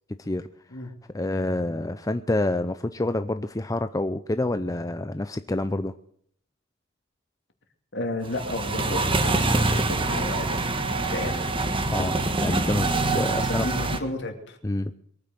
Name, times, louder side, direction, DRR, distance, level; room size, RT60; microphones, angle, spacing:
voice 1, 1.1-5.9 11.9-13.7 14.6-14.9, left 2 dB, 15° left, 10 dB, 0.6 m, -27 dB
voice 2, 7.9-10.6 10.9-11.4 13.5-14.6, left 2 dB, 60° left, 5 dB, 2.7 m, -32 dB
sound 1, 8.2-14.0, right 2 dB, 25° right, 1.5 m, -25 dB
23.0 x 9.5 x 6.6 m, 0.64 s
head